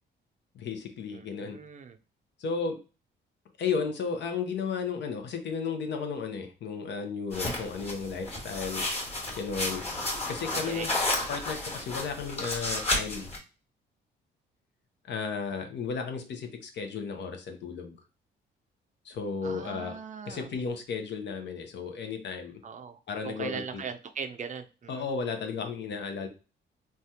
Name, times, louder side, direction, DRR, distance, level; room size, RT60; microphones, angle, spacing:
voice 1, 0.5-1.6 2.4-2.8 3.6-8.9 9.3-9.8 10.3-10.9 11.3-13.3 15.1-18.0 19.0-19.9 20.3-22.6 23.1-23.8 24.9-26.3, left 5 dB, 65° left, 5 dB, 0.7 m, -34 dB
voice 2, 1.1-2.0 10.5-10.9 19.4-20.5 22.6-25.1, right 6 dB, 40° right, 8 dB, 0.5 m, -40 dB
sound 1, 7.3-13.4, left 2 dB, 30° left, 1.4 m, -32 dB
3.2 x 2.3 x 2.7 m, 0.32 s
cardioid pair, 90°, 20 cm